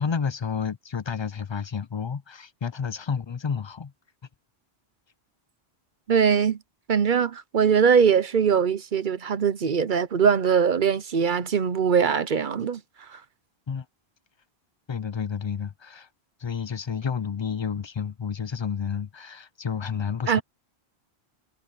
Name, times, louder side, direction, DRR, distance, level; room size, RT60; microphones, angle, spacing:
voice 1, 0.0-3.9 13.7-13.9 14.9-16.1 16.4-20.4, left 6 dB, 45° left, 0.3 m, -30 dB
voice 2, 6.1-6.6 6.9-12.8 13.1-13.2 20.3-20.4, right 7 dB, 55° right, 0.8 m, -21 dB
omnidirectional pair, 1.1 m